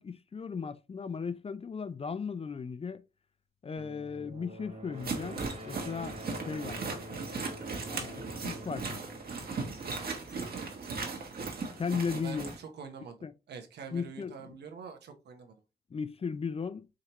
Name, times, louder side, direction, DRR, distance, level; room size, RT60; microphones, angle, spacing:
voice 1, 0.0-3.0 3.6-6.2 6.5-6.8 7.9-9.0 11.7-12.6 13.2-13.3 13.9-14.6 15.9-16.9, left 5 dB, 35° left, 0.4 m, -36 dB
sound 1, 3.8-10.4, equal, 40° right, 1.5 m, -47 dB
sound 2, 5.0-12.6, right 4 dB, 65° right, 1.3 m, -37 dB
voice 2, 10.5-10.9 12.2-13.2 13.5-15.6, right 5 dB, 80° right, 0.9 m, -46 dB
5.0 x 2.8 x 2.9 m
supercardioid pair, 45°, 17 cm